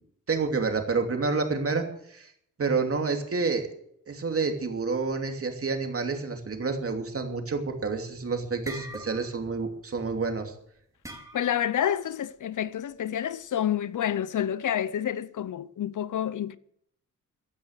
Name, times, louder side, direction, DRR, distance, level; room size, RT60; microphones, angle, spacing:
voice 1, 0.3-2.3 2.6-3.7 4.1-10.5, right 4 dB, 45° right, 2.8 m, -29 dB
sound 1, 7.8-8.1 8.4-9.5 9.8-10.0 11.0-11.7, right 1 dB, 10° right, 2.7 m, -42 dB
voice 2, 11.3-16.6, left 10 dB, 70° left, 0.7 m, -28 dB
15.5 x 10.5 x 6.6 m
wide cardioid pair, 135°, 32 cm